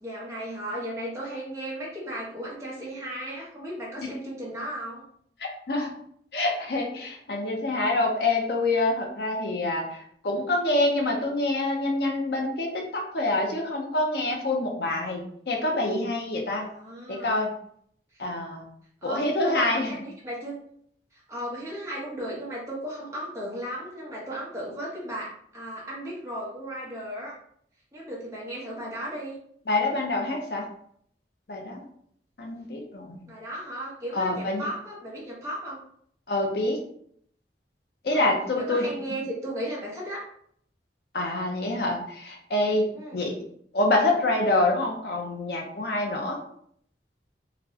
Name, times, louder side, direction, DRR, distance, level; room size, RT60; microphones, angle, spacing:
voice 1, 0.0-5.0 16.6-17.5 18.1-18.2 19.0-20.6 21.1-27.3 27.9-29.4 33.3-35.8 38.1-40.2 42.9-43.2, right 1 dB, 15° right, -5 dB, 0.9 m, -36 dB
voice 2, 5.4-5.9 6.3-10.0 10.2-16.7 17.1-17.5 18.2-18.7 19.0-19.9 29.7-30.6 31.5-31.8 32.4-33.2 34.1-34.6 36.3-36.8 38.0-38.9 41.1-42.9 43.1-43.3 43.7-46.4, left 2 dB, 65° left, 1 dB, 0.7 m, -26 dB
4.1 x 2.2 x 2.8 m, 0.66 s
head